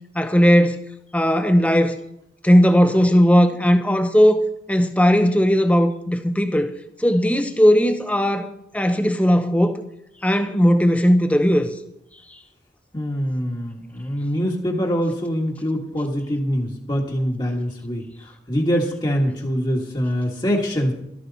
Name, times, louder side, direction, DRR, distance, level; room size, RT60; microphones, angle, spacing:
voice 1, 0.1-0.8 1.1-2.0 2.4-4.4 4.7-6.7 7.0-9.8 10.2-11.7, equal, 10° left, 0.8 m, -17 dB
voice 2, 12.9-20.9, equal, 25° left, 1.6 m, -24 dB
13.5 x 13.0 x 4.1 m
head